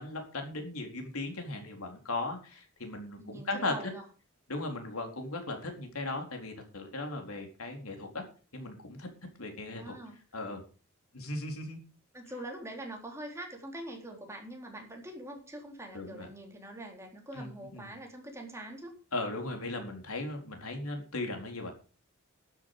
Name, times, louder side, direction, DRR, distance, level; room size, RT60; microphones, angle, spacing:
voice 1, 0.0-3.7 4.5-8.2 8.5-9.1 9.4-10.0 10.3-10.6 11.1-11.8 15.9-16.3 17.3-17.5 17.7-17.9 19.1-21.7, left 2 dB, 90° left, 4 dB, 4.2 m, -37 dB
voice 2, 3.2-4.0 9.7-10.2 12.1-18.9, right 1 dB, 15° right, 1 dB, 3.9 m, -44 dB
12.0 x 10.5 x 5.0 m, 0.36 s
head